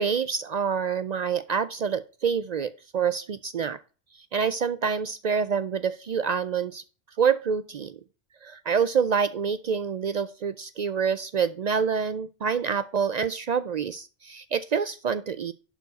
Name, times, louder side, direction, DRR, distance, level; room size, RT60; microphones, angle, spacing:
voice 1, 0.0-3.8 4.3-6.8 7.2-8.0 8.4-15.5, right 6 dB, 70° right, 14 dB, 0.4 m, -27 dB
11.0 x 4.6 x 4.0 m, 0.35 s
omnidirectional pair, 1.2 m